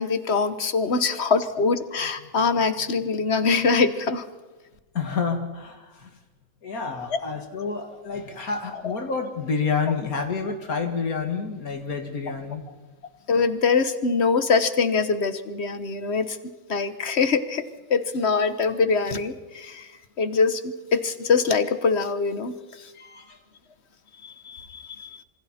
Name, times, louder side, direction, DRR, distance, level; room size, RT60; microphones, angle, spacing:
voice 1, 0.0-4.3 7.1-7.2 8.7-8.9 13.3-16.4 16.7-19.9 20.2-22.9 24.2-25.2, left 4 dB, 50° left, 11 dB, 1.4 m, -24 dB
voice 2, 4.9-6.1 6.6-12.7 22.9-23.4, left 5 dB, 90° left, 4 dB, 2.5 m, -29 dB
27.0 x 24.5 x 4.3 m, 1.2 s
omnidirectional pair, 1.5 m